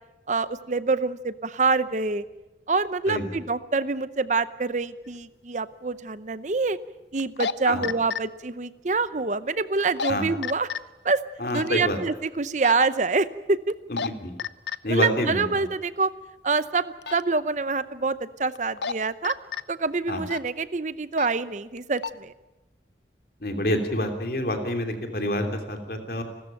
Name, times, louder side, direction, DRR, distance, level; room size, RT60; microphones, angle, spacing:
voice 1, 0.3-2.2 2.7-6.8 7.1-10.7 11.0-11.2 11.5-13.7 14.9-16.1 16.4-19.4 19.7-22.3, right 4 dB, 40° right, 15 dB, 0.7 m, -26 dB
sound 1, 5.1-5.2 7.2-7.5 7.8-8.2 9.8-10.1 10.4-10.8 11.5-11.7 12.6-12.8 13.7-14.1 14.4-14.8 17.0-17.2 18.5-18.9 19.2-19.6 20.3-20.5 21.1-21.3 21.8-22.1, left 6 dB, 75° left, 0.8 m, -30 dB
voice 2, 11.4-12.0 13.9-14.3 14.8-15.7 20.1-20.2 23.4-26.2, left 1 dB, 55° left, 5 dB, 3.1 m, -27 dB
30.0 x 13.5 x 9.0 m, 1.1 s
head